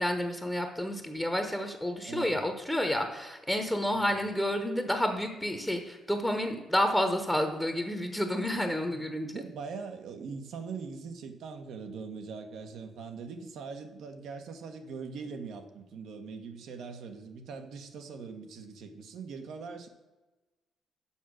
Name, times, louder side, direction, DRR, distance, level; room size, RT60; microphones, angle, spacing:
voice 1, 0.0-9.3, left 1 dB, 5° left, 5 dB, 1.0 m, -30 dB
voice 2, 2.0-2.4 3.9-4.2 8.9-19.9, right 5 dB, 75° right, 7 dB, 1.1 m, -42 dB
7.2 x 5.8 x 6.3 m, 1.1 s
cardioid pair, 90°, 0 cm